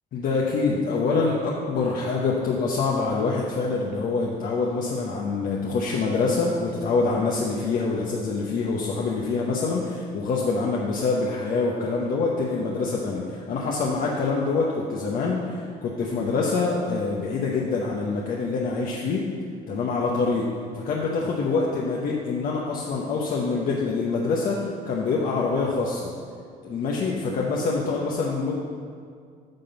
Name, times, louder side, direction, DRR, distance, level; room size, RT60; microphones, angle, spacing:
voice 1, 0.1-19.3 19.7-26.1 26.6-28.6, left 4 dB, 55° left, -3 dB, 0.9 m, -25 dB
9.1 x 3.7 x 6.9 m, 2.2 s
cardioid pair, 110°, 17 cm